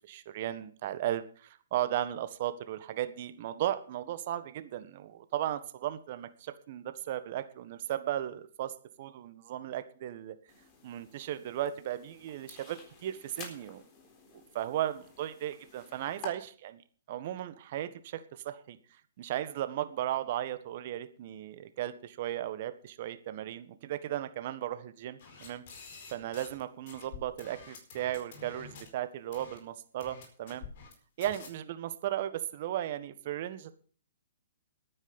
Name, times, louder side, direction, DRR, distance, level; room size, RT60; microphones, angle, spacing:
voice 1, 0.0-8.7 9.0-10.3 10.8-13.8 14.5-16.8 17.1-18.8 19.2-25.6 26.1-30.7 31.2-33.8, right 12 dB, 50° right, 12 dB, 1.5 m, -36 dB
sound 1, 10.5-16.3, left 4 dB, 30° left, 3.9 m, -51 dB
sound 2, 25.2-26.6 26.9-28.9 29.3-29.6 30.0-30.9 31.2-31.5, left 5 dB, 50° left, 4.6 m, -48 dB
11.0 x 9.8 x 7.1 m, 0.43 s
figure-of-eight pair, 125°, 0 cm